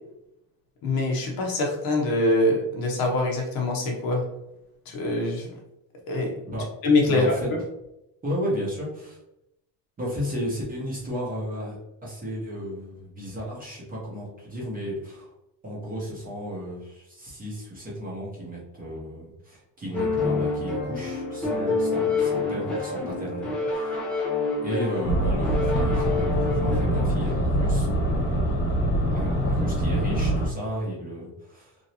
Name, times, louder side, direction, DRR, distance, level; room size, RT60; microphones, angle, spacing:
voice 1, 0.8-4.2 4.9-5.5 6.1-6.3 6.8-7.6, left 2 dB, 45° left, 1 dB, 0.8 m, -24 dB
voice 2, 7.1-7.5 8.2-9.2 10.0-15.3 15.6-24.0 24.6-28.6 29.1-31.7, equal, 15° right, -5 dB, 0.8 m, -34 dB
sound 1, 19.9-27.4, left 3 dB, 5° left, 0.3 m, -28 dB
sound 2, 25.0-30.5, right 1 dB, 25° left, 1.0 m, -24 dB
3.1 x 2.7 x 2.7 m, 0.87 s
cardioid pair, 155°, 49 cm